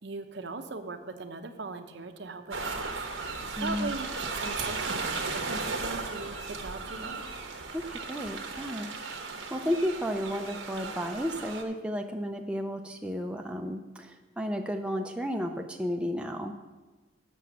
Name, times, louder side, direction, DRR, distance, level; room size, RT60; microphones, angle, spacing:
voice 1, 0.0-3.0 3.6-7.2, right 3 dB, 60° right, 8 dB, 0.7 m, -39 dB
sound 1, 2.5-11.6, right 4 dB, 90° right, 1.1 m, -36 dB
voice 2, 3.6-3.9 7.7-8.9 9.5-16.5, equal, 5° right, 3 dB, 0.4 m, -33 dB
7.6 x 6.2 x 6.8 m, 1.2 s
head